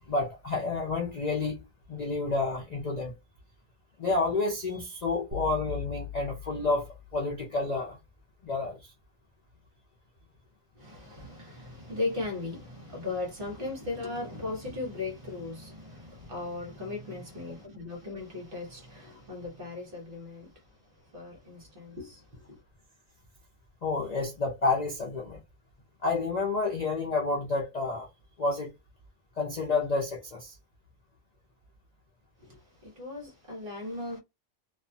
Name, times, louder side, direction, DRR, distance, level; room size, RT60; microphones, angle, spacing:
voice 1, 0.1-1.6 1.9-3.1 4.0-8.0 8.4-8.8 23.8-25.4 26.0-28.1 28.4-28.7 29.4-30.6, left 3 dB, 45° left, 0.5 m, -29 dB
sound 1, 5.3-7.4, left 8 dB, 70° right, 0.5 m, -40 dB
voice 2, 10.8-22.6 32.4-34.2, left 3 dB, 45° right, 1.0 m, -38 dB
2.5 x 2.3 x 2.6 m
omnidirectional pair, 1.5 m